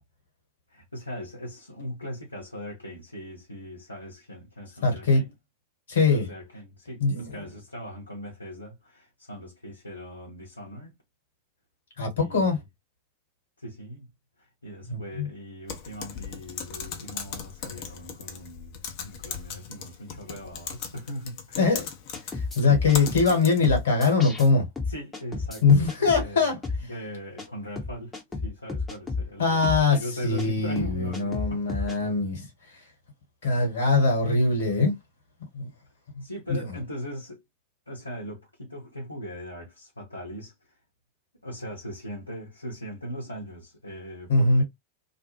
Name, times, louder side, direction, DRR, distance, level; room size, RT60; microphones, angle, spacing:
voice 1, 0.7-5.3 6.1-10.9 12.2-12.6 13.6-21.8 24.9-28.1 28.4-31.7 36.2-37.4 37.9-40.5 41.4-44.6, equal, 85° left, 0.9 m, -40 dB
voice 2, 4.8-5.2 5.9-6.3 7.0-7.3 12.0-12.6 14.9-15.3 21.6-21.9 22.6-24.6 25.6-26.6 29.4-30.0 30.2-32.5 33.4-34.9 35.5-35.7 44.3-44.6, left 4 dB, 60° left, 1.3 m, -22 dB
Typing, 15.7-23.8, left 7 dB, 45° left, 0.6 m, -38 dB
sound 1, 22.1-23.4 23.6-24.5 24.8-26.3 26.6-26.8 27.4-27.5 27.8-29.3 29.6-29.8 30.4-30.5 30.8-32.0, left 4 dB, 10° left, 0.8 m, -32 dB
2.6 x 2.2 x 2.9 m
figure-of-eight pair, 90°, 0 cm